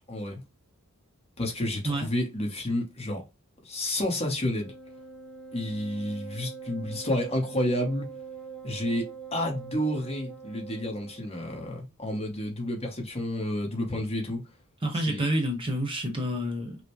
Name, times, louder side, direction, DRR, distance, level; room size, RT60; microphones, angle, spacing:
voice 1, 0.1-0.4 1.4-3.2 3.6-4.7 5.5-8.1 8.6-14.4 14.9-15.2, left 1 dB, 25° left, 1.1 m, -30 dB
Wind instrument woodwind instrument, 4.3-11.3, right 6 dB, ahead, 0.5 m, -43 dB
voice 2, 14.8-16.8, right 1 dB, 25° right, 1.0 m, -28 dB
5.9 x 2.2 x 3.1 m
head